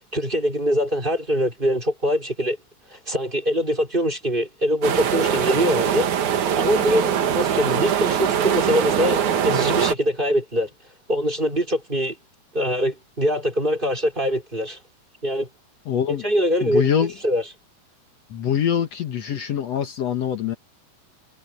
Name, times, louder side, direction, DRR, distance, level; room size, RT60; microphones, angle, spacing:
voice 1, 0.1-2.6 2.9-6.1 6.6-10.7 11.1-12.2 12.5-14.8 15.2-15.5 16.1-16.9 17.2-17.4, equal, 15° right, 4.3 m, -23 dB
sound 1, 4.8-10.0, right 8 dB, 80° right, 3.0 m, -22 dB
voice 2, 15.9-16.2 16.6-17.1 18.3-20.6, left 8 dB, 65° left, 2.4 m, -24 dB
omnidirectional pair, 3.3 m